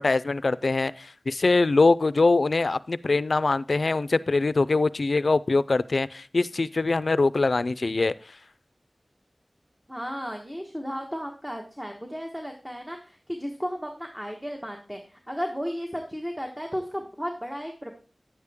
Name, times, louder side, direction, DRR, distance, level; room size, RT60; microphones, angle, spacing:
voice 1, 0.0-8.1, left 3 dB, 80° left, 0.4 m, -23 dB
voice 2, 9.9-18.0, equal, 10° right, 1.3 m, -34 dB
9.9 x 8.2 x 3.5 m
wide cardioid pair, 60°, 0 cm